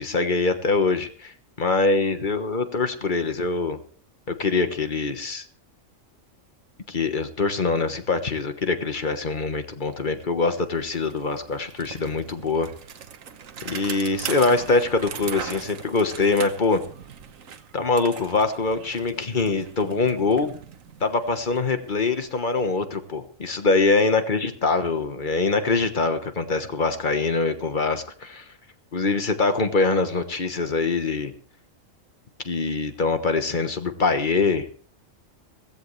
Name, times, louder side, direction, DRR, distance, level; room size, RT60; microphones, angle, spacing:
voice 1, 0.0-3.8 4.3-5.4 6.9-12.7 13.6-16.8 17.7-20.5 21.0-28.5 28.9-31.3 32.4-34.7, left 3 dB, 40° left, 9 dB, 1.4 m, -24 dB
Bicycle, 9.4-9.5 9.8-22.7, right 7 dB, 80° right, 1.4 m, -40 dB
16.5 x 15.5 x 3.3 m, 0.42 s
omnidirectional pair, 1.4 m